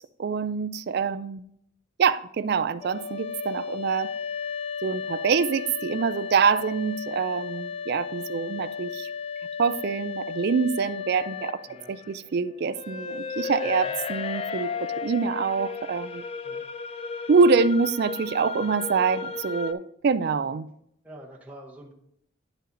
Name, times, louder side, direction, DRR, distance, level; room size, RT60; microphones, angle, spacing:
voice 1, 0.0-1.4 2.0-4.1 4.8-9.1 9.6-11.6 11.9-16.2 17.3-20.7, right 5 dB, 55° right, 0.4 m, -25 dB
sound 1, 2.8-19.7, left 5 dB, 30° left, 0.3 m, -34 dB
voice 2, 13.6-13.9 16.4-16.7 21.0-21.9, right 1 dB, 10° right, 0.9 m, -46 dB
10.0 x 5.6 x 3.8 m
head